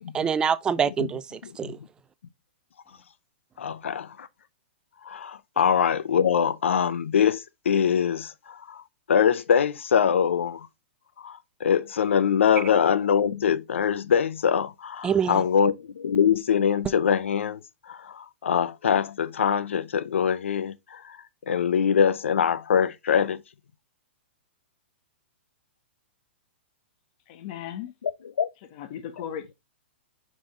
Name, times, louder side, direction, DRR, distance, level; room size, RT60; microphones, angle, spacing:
voice 1, 0.1-1.8 15.0-15.4, right 7 dB, 15° right, 0.4 m, -25 dB
voice 2, 1.4-1.7 3.6-4.3 5.0-10.7 11.2-23.4 28.0-28.5, left 7 dB, 90° left, 0.7 m, -24 dB
voice 3, 27.3-27.9 28.7-29.5, left 10 dB, 45° left, 1.4 m, -36 dB
5.5 x 5.1 x 3.8 m
hypercardioid pair, 150°, 7 cm